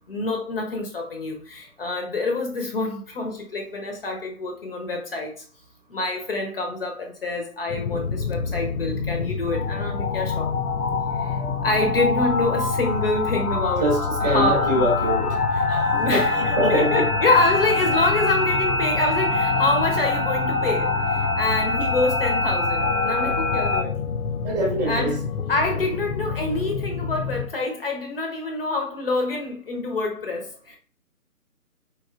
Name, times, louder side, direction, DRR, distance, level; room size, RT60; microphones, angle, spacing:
voice 1, 0.1-5.4 5.9-10.5 11.1-11.4 11.6-13.9 14.2-14.8 15.9-16.3 16.7-23.9 24.9-25.2 25.5-30.8, left 2 dB, 40° left, 1.0 m, -26 dB
sound 1, 7.7-27.5, left 5 dB, 70° left, 0.7 m, -29 dB
sound 2, 9.5-23.8, left 2 dB, 90° left, 1.2 m, -25 dB
voice 2, 14.2-16.2 16.6-16.9 23.2-23.3 24.4-25.1, right 1 dB, 15° right, 1.0 m, -24 dB
4.5 x 3.9 x 2.5 m
figure-of-eight pair, 155°, 45 cm